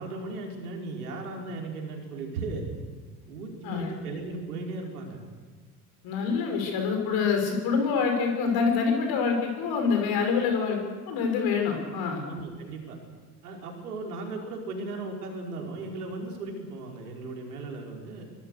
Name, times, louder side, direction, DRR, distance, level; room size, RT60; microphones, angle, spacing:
voice 1, 0.0-2.7 3.3-5.2 12.3-13.0 13.4-18.2, right 3 dB, 70° right, 1 dB, 5.4 m, -36 dB
voice 2, 6.0-10.8 11.1-12.3, left 5 dB, 50° left, 4 dB, 6.1 m, -26 dB
24.5 x 23.5 x 6.7 m, 1.4 s
figure-of-eight pair, 70°, 46 cm